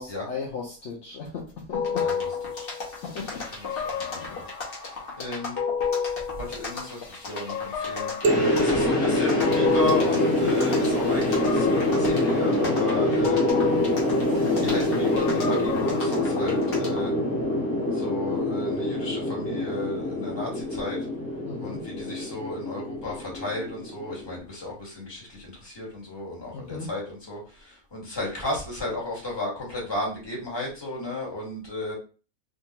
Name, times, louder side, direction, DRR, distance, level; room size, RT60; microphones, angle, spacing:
voice 1, 0.0-2.1 3.0-3.5 4.1-4.4 21.4-21.8 26.5-26.9, left 5 dB, 60° left, 0.9 m, -36 dB
sound 1, 1.7-17.1, left 6 dB, 45° left, 1.0 m, -32 dB
voice 2, 3.5-5.6 6.5-13.6 14.6-17.1 17.9-21.1 21.6-31.9, left 2 dB, 20° left, 1.3 m, -34 dB
sound 2, 8.2-24.4, left 1 dB, 10° right, 1.0 m, -25 dB
sound 3, 8.2-10.7, right 2 dB, 65° right, 0.8 m, -29 dB
3.5 x 2.7 x 2.8 m
omnidirectional pair, 1.5 m